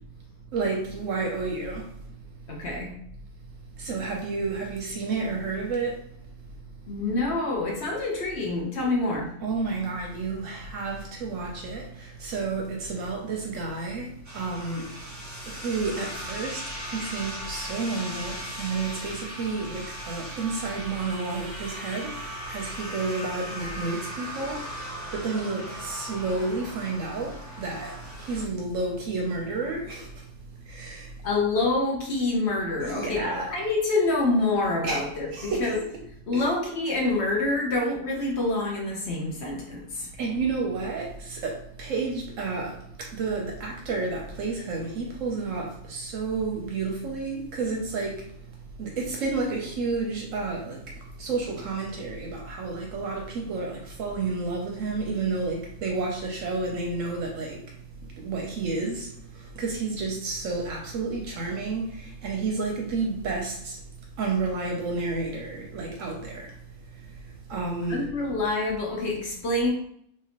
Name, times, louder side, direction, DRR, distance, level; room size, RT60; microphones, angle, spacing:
voice 1, 0.5-1.9 3.8-6.0 9.4-14.9 15.5-24.6 25.1-30.2 30.7-31.1 32.8-33.5 34.8-35.0 35.3-35.7 36.3-36.4 40.2-48.2 48.8-50.8 51.2-57.6 58.2-59.1 59.6-63.8 64.2-66.5 67.5-68.1, right 3 dB, 70° right, 0.9 m, -30 dB
voice 2, 2.5-2.9 6.9-9.3 31.2-35.8 36.3-40.1 67.8-69.7, left 2 dB, 55° left, 0.9 m, -26 dB
sound 1, 14.2-28.4, equal, 15° right, 0.7 m, -38 dB
3.3 x 2.8 x 2.8 m
omnidirectional pair, 1.5 m